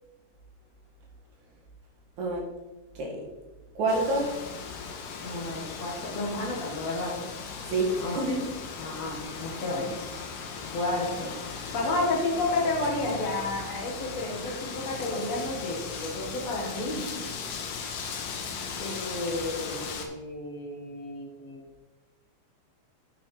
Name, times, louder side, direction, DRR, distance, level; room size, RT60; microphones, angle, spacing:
voice 1, 2.9-3.2 3.8-4.3 7.7-8.5 11.6-11.7, right 2 dB, 65° right, -2 dB, 3.2 m, -28 dB
Wind, 3.9-20.1, left 5 dB, 80° left, 2.7 m, -38 dB
voice 2, 5.2-7.1 8.0-8.2 8.8-9.9 10.7-11.3 11.7-17.2 18.8-21.6, left 2 dB, 60° left, -1 dB, 2.4 m, -31 dB
8.5 x 6.1 x 4.8 m, 1.1 s
omnidirectional pair, 3.8 m